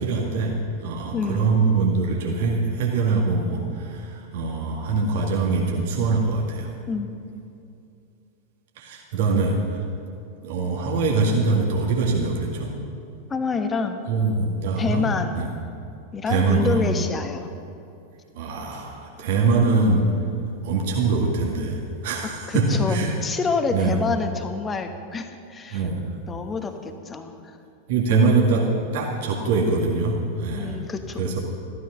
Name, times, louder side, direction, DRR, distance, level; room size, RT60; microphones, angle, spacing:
voice 1, 0.0-6.7 8.8-9.8 10.4-12.7 14.1-15.5 16.3-16.8 18.3-20.1 20.6-23.1 23.7-24.0 25.7-26.0 27.9-28.7 28.9-30.8 31.2-31.4, right 3 dB, 55° right, -1 dB, 1.9 m, -23 dB
voice 2, 1.1-1.5 6.9-7.1 13.3-14.1 14.8-15.5 16.1-17.5 22.2-25.8 26.3-27.6 30.5-31.4, left 4 dB, 20° left, 7 dB, 1.1 m, -28 dB
15.0 x 12.5 x 5.7 m, 2.6 s
figure-of-eight pair, 90°, 0 cm